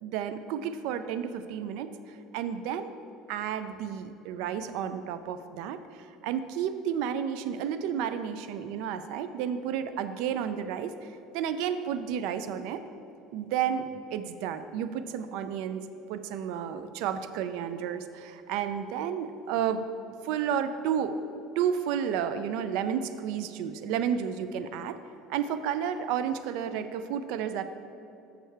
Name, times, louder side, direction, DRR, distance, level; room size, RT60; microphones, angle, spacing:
voice 1, 0.0-3.0 3.3-11.1 11.3-12.8 13.3-19.9 20.2-25.0 25.3-27.6, right 8 dB, 70° right, 10 dB, 0.3 m, -32 dB
6.7 x 6.4 x 4.5 m, 2.8 s
cardioid pair, 145°, 0 cm